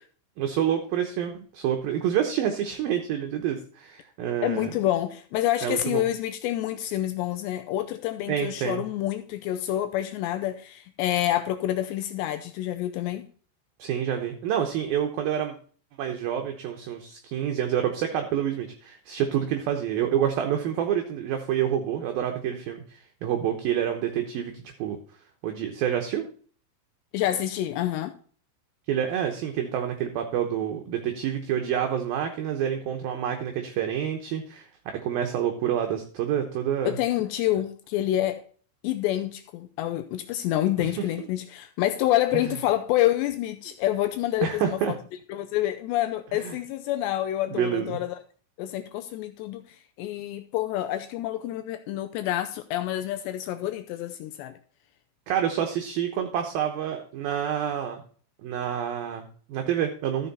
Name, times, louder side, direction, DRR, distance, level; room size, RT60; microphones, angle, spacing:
voice 1, 0.4-4.7 5.6-6.0 8.3-8.8 13.8-15.5 16.0-25.0 25.4-26.2 28.9-34.7 35.0-37.0 40.8-40.9 41.2-41.3 44.4-44.9 46.3-46.5 47.5-48.0 55.3-58.0 58.4-60.3, right 9 dB, 75° right, 2.2 m, -28 dB
voice 2, 4.4-13.3 27.1-28.1 36.9-38.4 38.8-44.9 45.3-48.2 48.6-54.5, left 13 dB, 80° left, 2.6 m, -27 dB
13.5 x 6.8 x 4.1 m
omnidirectional pair, 5.4 m